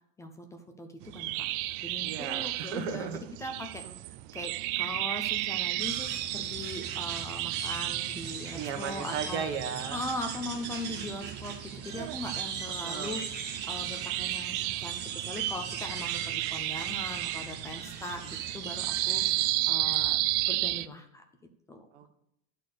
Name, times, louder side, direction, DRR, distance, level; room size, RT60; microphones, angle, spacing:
voice 1, 0.2-1.5 1.8-9.5 9.9-13.2 13.7-20.2 20.5-21.2 21.7-21.8, left 1 dB, 10° left, 5 dB, 0.5 m, -40 dB
sound 1, 1.0-20.9, right 17 dB, 55° right, 0.4 m, -33 dB
voice 2, 2.0-3.2 8.5-10.0 12.7-13.2 21.9-22.1, right 8 dB, 85° right, 7 dB, 1.4 m, -36 dB
sound 2, 5.8-19.5, right 7 dB, 30° right, 1.0 m, -39 dB
11.5 x 4.2 x 6.6 m, 0.80 s
cardioid pair, 175°, 33 cm